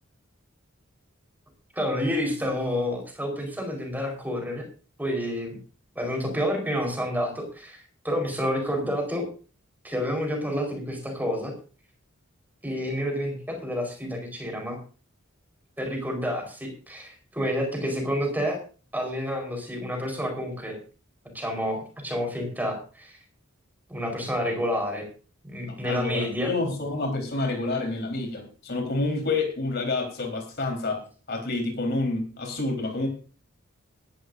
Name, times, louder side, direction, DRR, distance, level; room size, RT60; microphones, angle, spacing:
voice 1, 1.7-4.6 5.0-5.6 5.9-9.3 9.8-11.5 12.6-14.8 15.8-18.6 18.9-20.8 21.3-23.2 23.9-25.1 25.4-26.5, equal, 10° right, 2 dB, 4.4 m, -29 dB
voice 2, 25.7-31.0 31.3-33.1, left 2 dB, 50° left, 3 dB, 4.1 m, -28 dB
19.0 x 12.0 x 2.6 m, 0.37 s
head